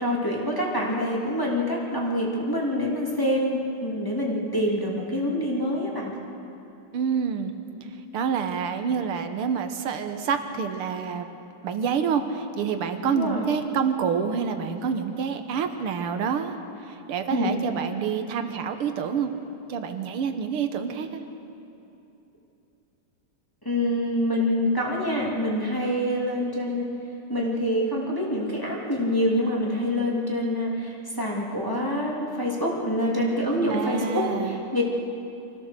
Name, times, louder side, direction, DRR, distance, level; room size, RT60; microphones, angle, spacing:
voice 1, 0.0-6.2 13.1-13.4 17.3-17.5 23.6-26.9 27.3-34.8, equal, 10° left, -4 dB, 2.7 m, -26 dB
voice 2, 6.9-7.5 8.1-11.3 11.6-16.6 16.9-19.3 19.7-21.2 33.7-34.6, right 6 dB, 85° right, 7 dB, 2.0 m, -27 dB
25.0 x 16.0 x 6.7 m, 2.8 s
omnidirectional pair, 2.4 m